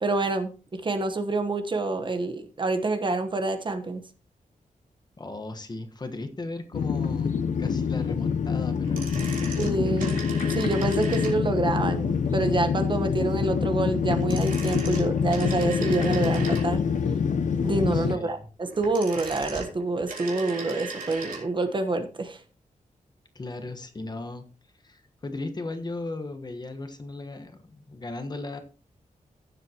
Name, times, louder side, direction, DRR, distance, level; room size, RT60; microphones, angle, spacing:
voice 1, 0.0-4.0 9.6-10.2 10.5-16.8 17.6-22.4, right 2 dB, 35° right, 7 dB, 1.1 m, -27 dB
voice 2, 5.2-9.6 17.9-18.5 23.3-24.5 24.8-28.6, left 2 dB, 30° left, 7 dB, 1.3 m, -37 dB
sound 1, 6.7-18.2, left 6 dB, 65° left, 0.8 m, -26 dB
sound 2, 8.8-11.7 14.1-17.0 18.6-21.5 21.7-21.8, right 3 dB, 80° right, 3.4 m, -38 dB
15.5 x 7.5 x 2.9 m, 0.35 s
wide cardioid pair, 145°, 14 cm